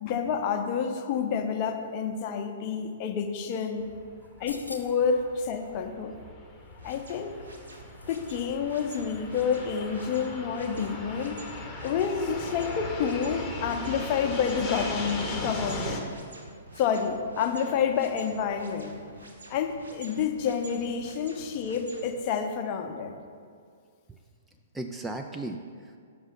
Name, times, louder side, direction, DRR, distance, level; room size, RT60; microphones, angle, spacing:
voice 1, 0.0-3.9 4.4-6.2 6.8-7.4 8.1-11.4 11.8-16.0 16.8-18.9 19.5-23.1, left 6 dB, 35° left, 5 dB, 0.6 m, -29 dB
Fixed-wing aircraft airplane, 3.8-16.0, left 2 dB, 15° left, 0.9 m, -38 dB
sound 1, 4.2-5.1 6.6-8.4 8.7-8.8, left 2 dB, 85° left, 0.6 m, -48 dB
sound 2, 6.8-22.1, right 2 dB, 80° right, 1.0 m, -49 dB
voice 2, 24.7-26.0, right 2 dB, 10° right, 3 dB, 0.3 m, -37 dB
5.9 x 5.5 x 5.6 m, 2.1 s
figure-of-eight pair, 115°, 0 cm